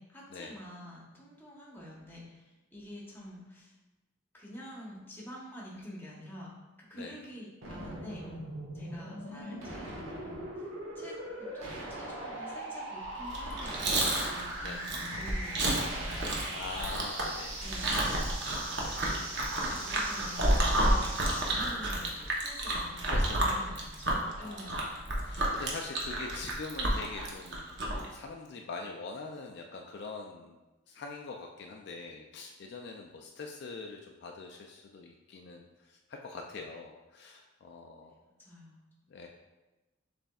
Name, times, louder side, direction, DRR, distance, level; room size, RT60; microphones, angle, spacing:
voice 1, 0.0-3.7 4.3-6.5 6.8-8.3 8.7-10.7 10.9-16.3 17.2-18.1 18.7-22.1 22.4-23.0 23.3-24.1 24.4-25.0 38.2-39.3, equal, 10° left, -4 dB, 0.9 m, -48 dB
sound 1, 7.6-21.6, right 1 dB, 75° right, 1.1 m, -41 dB
Chewing mastication, 13.2-28.1, right 1 dB, 55° right, 0.8 m, -31 dB
voice 2, 16.5-17.6 23.0-23.8 24.4-24.9 25.1-27.7 28.1-30.5 30.9-38.1 39.1-39.3, left 4 dB, 55° left, 2 dB, 0.3 m, -43 dB
6.7 x 3.3 x 2.3 m, 1.1 s
head